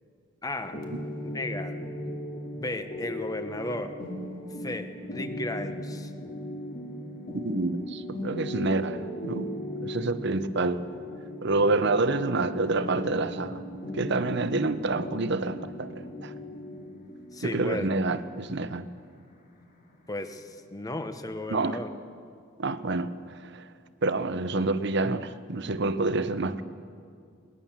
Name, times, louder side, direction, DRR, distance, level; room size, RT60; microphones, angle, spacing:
voice 1, 0.4-0.8 1.3-1.9 2.5-3.9 4.6-6.1 17.3-17.9 20.1-21.9, left 1 dB, 20° left, 1.1 m, -34 dB
sound 1, 0.7-20.3, left 1 dB, 45° left, 2.5 m, -38 dB
voice 2, 7.3-10.8 11.4-13.6 13.9-16.3 17.4-18.9 21.5-21.8 22.6-23.7 24.0-26.6, right 3 dB, 60° right, 0.9 m, -28 dB
20.5 x 20.0 x 7.4 m
head